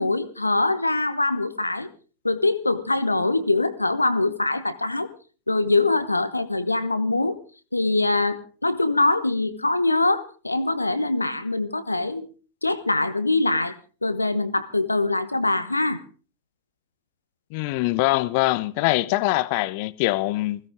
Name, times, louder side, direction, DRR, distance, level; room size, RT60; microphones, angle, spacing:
voice 1, 0.0-1.9 2.2-5.1 5.5-7.4 7.7-12.3 12.6-16.0, left 2 dB, 85° left, 1.0 m, -23 dB
voice 2, 17.5-20.6, left 19 dB, 45° left, 0.9 m, -23 dB
21.0 x 16.5 x 3.6 m
figure-of-eight pair, 90°, 0 cm